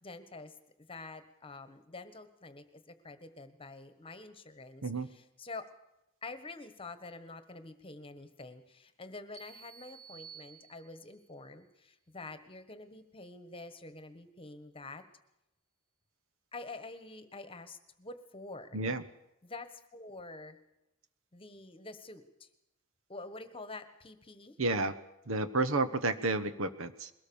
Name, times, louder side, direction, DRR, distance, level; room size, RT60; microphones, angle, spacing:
voice 1, 0.0-5.7 6.2-15.0 16.5-18.8 19.4-20.6 21.3-22.5 23.1-24.6, left 3 dB, 25° left, 11 dB, 1.5 m, -47 dB
sound 1, 9.3-11.2, right 7 dB, 15° right, 3.7 m, -53 dB
voice 2, 24.6-24.9 25.3-27.1, right 3 dB, 65° right, 11 dB, 1.2 m, -31 dB
22.0 x 18.0 x 7.1 m, 0.87 s
head